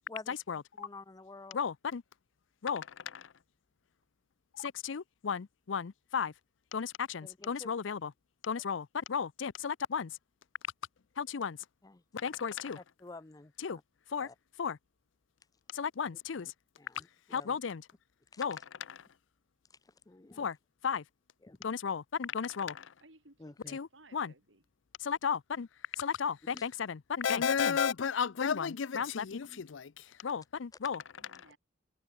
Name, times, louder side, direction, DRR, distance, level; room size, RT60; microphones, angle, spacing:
voice 1, 0.3-0.6 1.5-2.0 2.6-3.3 4.5-6.3 6.7-8.1 8.4-10.2 11.2-11.6 12.1-12.8 13.6-13.8 14.1-14.3 14.6-14.8 15.7-16.5 17.3-17.9 18.4-19.1 20.4-20.6 20.8-21.0 21.6-22.9 23.7-24.3 25.0-25.7 25.9-31.4, left 6 dB, 85° left, 0.5 m, -34 dB
voice 2, 0.8-1.6 7.2-7.7 11.8-12.0 12.8-13.8 14.2-14.3 16.4-16.5 16.8-17.6 18.3-18.4 20.1-20.5 21.4-21.6 23.4-23.8 26.5-26.6 29.5-29.6, left 3 dB, 20° left, 0.5 m, -50 dB
voice 3, 23.0-24.6 31.2-31.6, right 2 dB, 80° right, 6.5 m, -60 dB
head